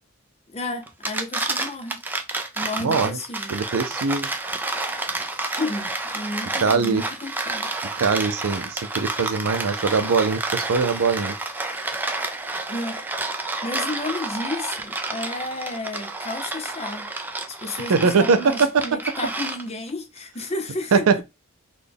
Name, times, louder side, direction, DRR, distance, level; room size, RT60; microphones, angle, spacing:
voice 1, 0.5-2.0 2.6-3.5 5.6-5.9 6.1-7.7 12.7-13.0 13.3-17.1 17.5-21.2, left 2 dB, 30° left, 0.7 m, -32 dB
sound 1, 0.9-19.9, right 2 dB, 10° right, 0.3 m, -30 dB
voice 2, 2.8-3.2 3.5-4.3 6.6-7.0 8.0-11.3 17.9-18.8 20.9-21.2, right 5 dB, 85° right, 0.5 m, -21 dB
4.0 x 2.2 x 3.4 m
head